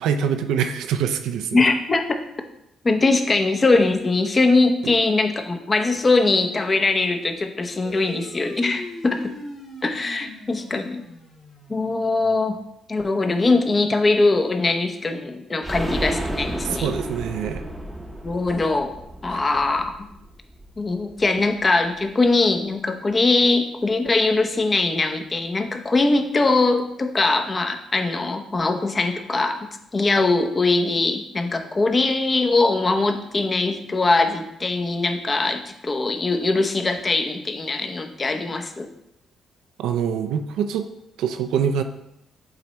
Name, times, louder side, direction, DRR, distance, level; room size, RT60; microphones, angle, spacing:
voice 1, 0.0-1.6 16.6-17.6 19.3-19.4 39.8-40.9 41.2-41.8, right 8 dB, 85° right, 7 dB, 0.5 m, -24 dB
voice 2, 1.5-2.2 2.8-9.3 9.8-11.0 11.7-12.6 12.9-16.9 18.2-18.9 19.2-20.1 20.8-38.9, left 3 dB, 30° left, 6 dB, 0.7 m, -21 dB
sound 1, 7.8-12.7, left 1 dB, 50° left, 1.8 m, -40 dB
sound 2, 15.6-21.2 21.6-21.7 22.0-22.1, right 1 dB, 5° right, 0.8 m, -32 dB
7.7 x 3.0 x 4.3 m, 0.81 s
cardioid pair, 90°, 0 cm